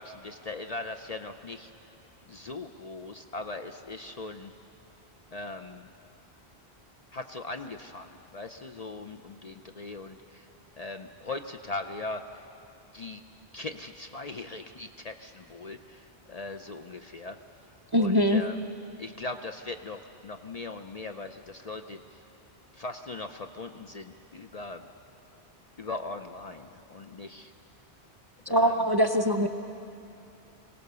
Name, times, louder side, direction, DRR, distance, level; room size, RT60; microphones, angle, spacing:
voice 1, 0.0-1.7 2.3-4.5 5.3-5.9 7.1-10.5 10.7-12.5 12.9-13.2 13.5-17.4 18.0-18.6 19.0-22.2 22.7-24.9 25.8-27.5 28.5-28.9, left 3 dB, 45° left, 6 dB, 0.6 m, -40 dB
voice 2, 17.9-18.4 28.5-29.5, equal, 30° right, 6 dB, 0.5 m, -22 dB
24.0 x 17.5 x 6.8 m, 2.6 s
omnidirectional pair, 1.1 m